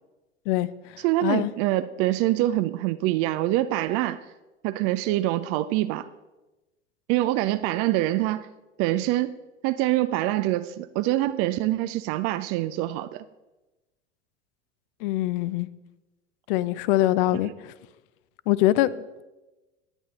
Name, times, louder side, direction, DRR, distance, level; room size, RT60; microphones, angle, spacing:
voice 1, 1.0-4.2 4.6-6.1 7.1-8.5 8.8-9.4 9.6-13.2 17.4-17.5, right 15 dB, 45° right, 13 dB, 0.5 m, -25 dB
voice 2, 15.0-15.7 16.5-17.7 18.5-19.1, left 15 dB, 55° left, 18 dB, 0.5 m, -23 dB
10.0 x 9.0 x 4.1 m, 1.1 s
figure-of-eight pair, 70°, 33 cm